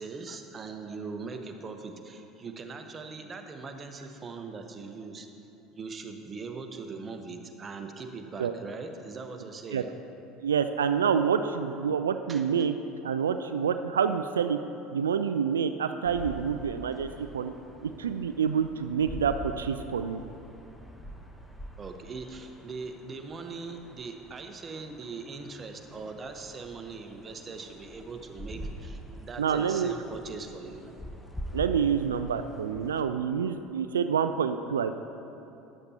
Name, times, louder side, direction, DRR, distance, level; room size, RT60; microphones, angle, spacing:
voice 1, 0.0-5.3 5.7-10.0 12.3-12.5 21.8-30.9, right 4 dB, 30° right, 5 dB, 1.0 m, -41 dB
voice 2, 10.4-12.7 13.0-14.6 14.9-17.5 17.8-20.2 29.4-30.0 31.5-34.9, right 7 dB, 80° right, 9 dB, 0.3 m, -27 dB
sound 1, 16.0-33.0, equal, 5° left, 1.0 m, -45 dB
13.5 x 10.0 x 2.9 m, 2.8 s
figure-of-eight pair, 70°, 0 cm